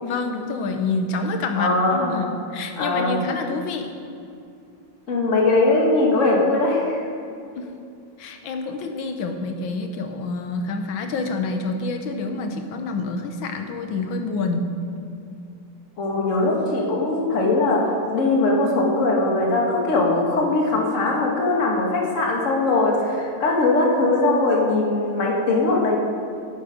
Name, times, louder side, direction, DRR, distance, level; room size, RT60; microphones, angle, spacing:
voice 1, 0.0-3.9 7.5-7.7 8.2-14.7, left 3 dB, 70° left, 5 dB, 1.6 m, -27 dB
voice 2, 1.6-2.3 2.8-3.2 5.1-7.0 16.0-26.0, left 2 dB, 40° left, -1 dB, 1.7 m, -20 dB
11.0 x 8.3 x 5.1 m, 2.5 s
omnidirectional pair, 2.3 m